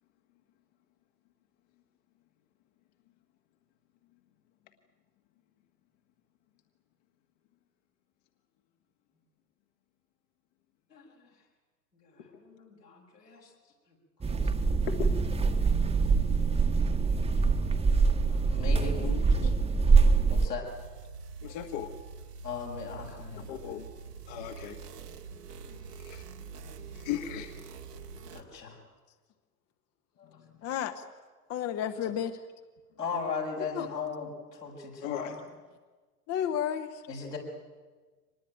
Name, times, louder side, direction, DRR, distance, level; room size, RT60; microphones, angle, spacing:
voice 1, 10.9-11.4 11.9-14.0 14.2-14.8 15.6-15.9 16.6-17.9 18.3-19.1 20.3-20.7 21.4-21.7 22.4-23.5 25.6-25.8 26.6-27.1 27.9-28.0 28.3-28.8 30.2-30.4 32.0-32.1 33.0-35.3 37.1-37.4, left 5 dB, 85° left, -1 dB, 6.7 m, -39 dB
sound 1, 14.2-20.5, right 4 dB, 15° right, 1.4 m, -24 dB
voice 2, 19.0-19.6 30.6-31.0 31.5-32.4 33.7-33.9 36.3-37.0, left 9 dB, 30° left, 9 dB, 1.2 m, -32 dB
sound 2, 20.6-28.4, right 5 dB, 80° right, 2.2 m, -45 dB
voice 3, 21.4-21.9 23.5-23.9 24.3-24.8 26.0-26.2 26.9-27.6 35.0-35.4, left 10 dB, 50° left, 5 dB, 1.8 m, -36 dB
25.0 x 20.0 x 9.2 m, 1.4 s
figure-of-eight pair, 95°, 47 cm